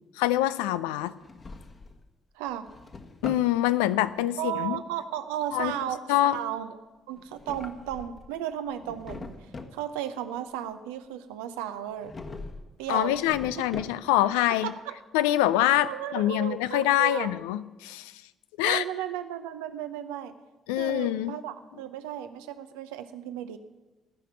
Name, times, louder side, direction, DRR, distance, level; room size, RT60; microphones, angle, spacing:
voice 1, 0.2-1.1 3.2-4.8 5.5-5.7 6.1-6.4 12.9-14.7 15.1-18.1 18.6-18.8 20.7-21.3, left 13 dB, 75° left, 14 dB, 0.4 m, -25 dB
Drawer open or close, 1.1-2.0 2.5-3.5 7.2-8.3 8.7-9.8 12.0-12.7 13.0-14.3, left 3 dB, 40° left, 1.4 m, -42 dB
voice 2, 2.3-2.7 4.4-6.8 7.1-9.3 9.7-12.1 12.8-13.2 14.6-14.9 15.9-17.3 18.6-20.3 20.8-23.6, right 11 dB, 70° right, 10 dB, 0.7 m, -34 dB
16.5 x 5.8 x 9.3 m, 1.2 s
figure-of-eight pair, 45°, 0 cm